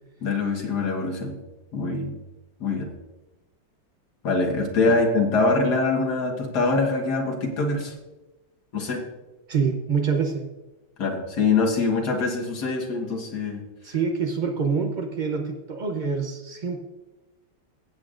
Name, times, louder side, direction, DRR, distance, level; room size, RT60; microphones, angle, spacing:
voice 1, 0.2-1.4 1.7-2.1 2.6-2.9 4.2-7.9 8.7-9.0 11.0-13.6, left 3 dB, 60° left, 2 dB, 2.0 m, -24 dB
voice 2, 9.5-10.4 13.8-16.8, right 5 dB, 65° right, 3 dB, 0.4 m, -26 dB
16.0 x 8.3 x 2.5 m, 1.0 s
omnidirectional pair, 2.0 m